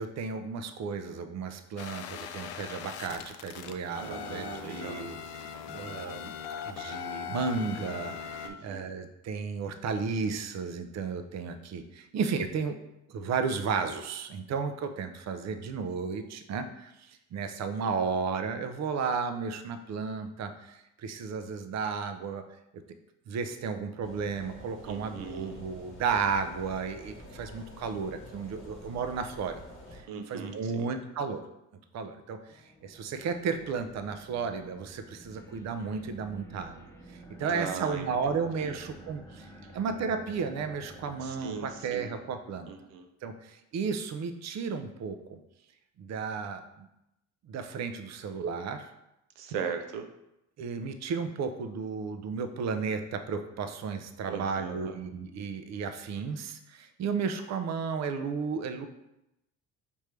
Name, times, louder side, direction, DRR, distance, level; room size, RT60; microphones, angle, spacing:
voice 1, 0.0-6.3 6.7-12.8 13.1-22.4 22.7-22.8 23.3-29.6 29.9-31.4 31.9-36.8 37.1-39.5 39.7-42.7 43.2-45.4 46.0-46.9 47.5-48.9 50.6-58.9, right 5 dB, 45° right, 8 dB, 0.6 m, -33 dB
sound 1, 1.8-8.5, left 8 dB, 75° left, 0.5 m, -40 dB
voice 2, 4.0-5.1 8.4-8.9 24.8-25.6 30.1-30.9 37.4-38.8 39.6-39.7 41.2-42.1 42.7-43.0 49.4-50.1 54.3-55.0, right 6 dB, 90° right, 6 dB, 0.6 m, -39 dB
sound 2, 24.0-30.0, left 1 dB, 30° left, 1.2 m, -48 dB
sound 3, 32.5-43.0, right 1 dB, 5° left, 0.5 m, -51 dB
5.2 x 3.1 x 3.2 m, 0.87 s
supercardioid pair, 70°, 40 cm